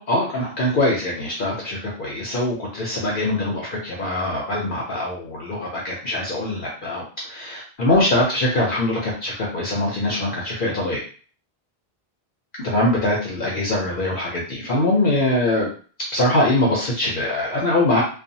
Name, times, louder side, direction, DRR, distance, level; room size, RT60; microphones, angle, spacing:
voice 1, 0.0-11.0 12.6-15.7 16.1-18.0, left 1 dB, 60° left, -3 dB, 0.7 m, -22 dB
2.7 x 2.2 x 2.6 m, 0.41 s
omnidirectional pair, 1.1 m